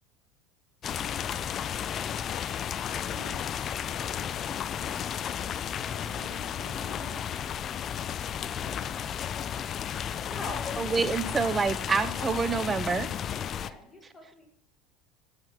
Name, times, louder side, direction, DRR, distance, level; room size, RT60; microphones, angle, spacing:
sound 1, 0.8-13.7, left 9 dB, 40° left, 0.3 m, -33 dB
voice 1, 3.1-3.5 6.0-7.3 13.3-13.9, right 7 dB, 75° right, 3 dB, 0.8 m, -51 dB
voice 2, 10.2-11.4 13.5-14.5, left 2 dB, 15° left, 0 dB, 1.9 m, -44 dB
voice 3, 10.8-13.1, right 4 dB, 25° right, 15 dB, 0.5 m, -27 dB
9.4 x 4.7 x 3.6 m, 0.64 s
hypercardioid pair, 90°, 0 cm